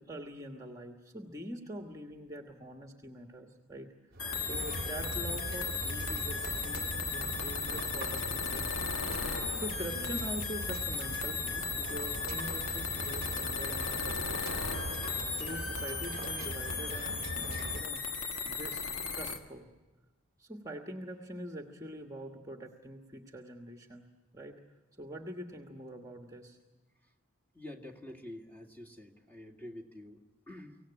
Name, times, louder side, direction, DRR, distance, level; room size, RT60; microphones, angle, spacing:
voice 1, 0.0-3.9 4.4-8.7 9.5-14.7 15.3-18.2 18.4-18.8 19.1-19.7 20.4-24.1 24.3-24.6 25.0-26.6, right 1 dB, 15° right, 4 dB, 1.3 m, -44 dB
sound 1, 4.1-17.8, right 2 dB, 45° right, 1.0 m, -41 dB
sound 2, 4.2-19.4, left 5 dB, 85° left, 1.9 m, -36 dB
voice 2, 27.5-30.8, left 1 dB, 10° left, 0 dB, 2.0 m, -48 dB
24.0 x 18.0 x 9.8 m, 1.3 s
head